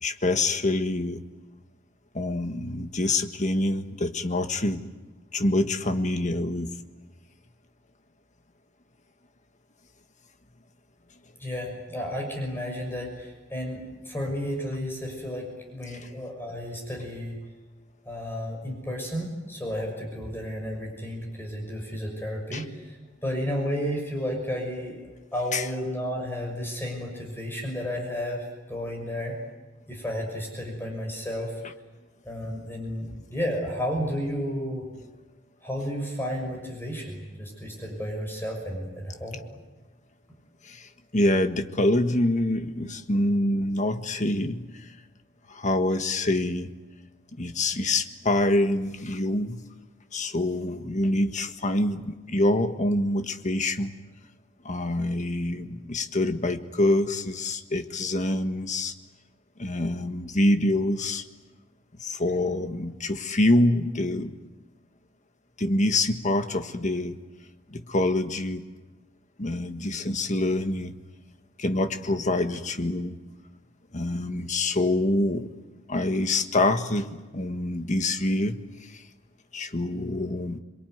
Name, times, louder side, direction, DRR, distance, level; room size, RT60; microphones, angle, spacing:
voice 1, 0.0-1.2 2.1-4.8 5.3-6.7 22.5-22.6 25.5-25.7 40.6-44.9 45.5-46.7 47.4-49.6 50.1-53.9 54.6-58.9 59.6-61.2 62.0-64.3 65.6-67.2 67.7-68.6 69.4-70.9 71.6-73.2 73.9-75.5 75.9-78.6 78.9-79.0 79.5-80.6, left 1 dB, 40° left, 8 dB, 1.6 m, -26 dB
voice 2, 11.4-17.4 18.0-23.0 23.2-29.4 29.9-31.5 32.2-34.8 35.6-39.4, equal, 10° left, 1 dB, 6.4 m, -32 dB
27.5 x 22.5 x 9.5 m, 1.2 s
head